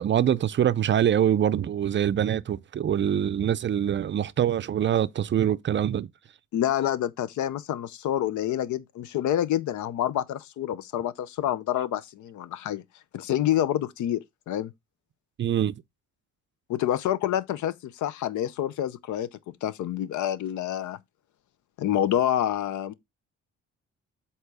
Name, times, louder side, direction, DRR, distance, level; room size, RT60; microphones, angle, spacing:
voice 1, 0.0-6.1 15.4-15.7, right 10 dB, 40° right, 0.5 m, -24 dB
voice 2, 6.5-12.8 13.1-14.7 16.7-19.3 19.6-21.0 21.8-22.9, left 11 dB, 75° left, 0.7 m, -27 dB
7.9 x 2.9 x 4.8 m
cardioid pair, 90°, 30 cm